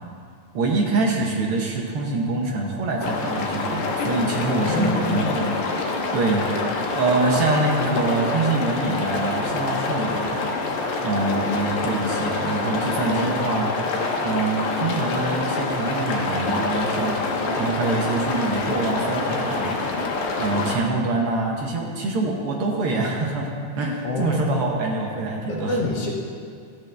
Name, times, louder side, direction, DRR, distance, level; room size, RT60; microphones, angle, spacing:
voice 1, 0.5-5.8 6.1-6.5 6.9-10.4 11.0-13.7 14.2-17.2 17.6-19.8 20.4-23.5 23.7-25.8, right 3 dB, 60° right, -1 dB, 1.6 m, -25 dB
sound 1, 3.0-20.8, left 3 dB, 80° left, 2.3 m, -26 dB
voice 2, 4.5-5.3 24.0-24.6 25.5-26.1, left 3 dB, 60° left, -3 dB, 2.0 m, -26 dB
13.5 x 8.9 x 3.4 m, 2.3 s
omnidirectional pair, 3.4 m